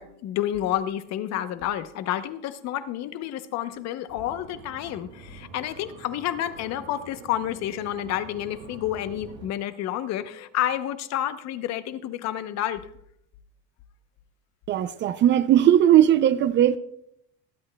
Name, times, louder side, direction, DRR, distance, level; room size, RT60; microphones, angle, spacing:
voice 1, 0.0-12.8, left 12 dB, 55° left, 12 dB, 0.8 m, -30 dB
sound 1, 4.1-9.5, right 4 dB, 75° right, 4.4 m, -46 dB
voice 2, 14.7-16.8, right 11 dB, 35° right, 14 dB, 0.4 m, -18 dB
22.5 x 8.7 x 2.3 m, 0.73 s
cardioid pair, 135°, 32 cm